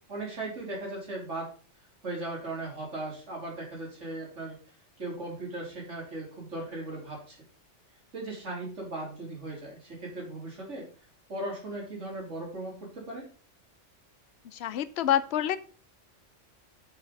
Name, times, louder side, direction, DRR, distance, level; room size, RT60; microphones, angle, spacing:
voice 1, 0.1-1.5 2.0-4.6 5.0-7.4 8.1-10.9 11.3-13.3, right 2 dB, 75° right, -2 dB, 3.6 m, -37 dB
voice 2, 14.5-15.6, left 11 dB, 65° left, 14 dB, 0.9 m, -27 dB
6.7 x 5.7 x 5.2 m, 0.39 s
omnidirectional pair, 1.3 m